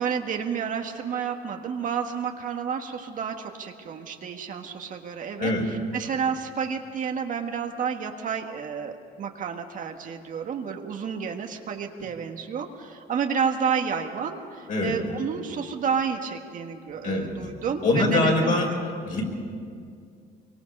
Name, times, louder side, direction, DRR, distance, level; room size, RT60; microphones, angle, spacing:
voice 1, 0.0-18.8, right 6 dB, 50° right, 4 dB, 1.7 m, -30 dB
voice 2, 17.8-18.7 19.0-19.2, left 2 dB, 50° left, 0 dB, 5.7 m, -23 dB
25.0 x 23.5 x 5.5 m, 2.3 s
cardioid pair, 110°, 17 cm